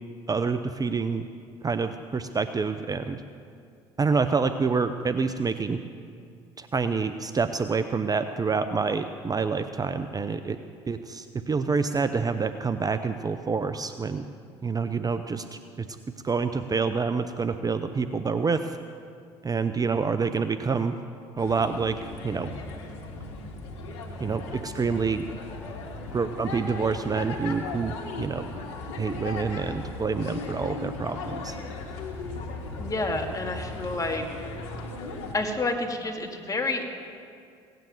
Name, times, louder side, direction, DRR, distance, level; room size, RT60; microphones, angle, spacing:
voice 1, 0.3-1.2 1.6-3.2 4.0-5.8 6.6-10.6 10.9-14.3 14.6-15.9 16.2-18.8 19.4-21.0 21.4-22.0 22.2-22.5 24.2-25.2 26.1-28.5 29.0-31.6, right 5 dB, 25° right, 10 dB, 0.7 m, -27 dB
sound 1, 21.4-35.3, left 3 dB, 85° left, 1.7 m, -37 dB
voice 2, 32.8-34.2 35.3-36.9, left 2 dB, 25° left, 2 dB, 2.3 m, -29 dB
17.5 x 9.3 x 7.8 m, 2.4 s
hypercardioid pair, 65°, 14 cm